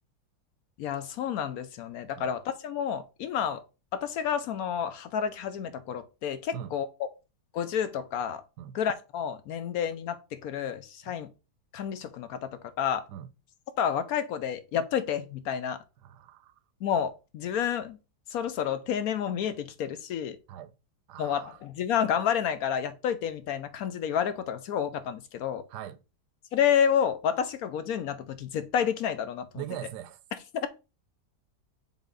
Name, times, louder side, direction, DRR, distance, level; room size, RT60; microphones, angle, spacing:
voice 1, 0.8-3.6 3.9-6.9 7.5-8.4 8.7-11.3 11.7-13.1 13.8-15.8 16.8-18.0 18.3-20.4 21.2-25.6 26.5-29.6 30.6-30.7, left 8 dB, 70° left, 1.0 m, -30 dB
voice 2, 16.0-16.5 20.5-20.7 21.1-21.6 25.7-26.0 29.5-30.2, right 11 dB, 85° right, 1.2 m, -41 dB
7.1 x 3.8 x 3.8 m
omnidirectional pair, 1.7 m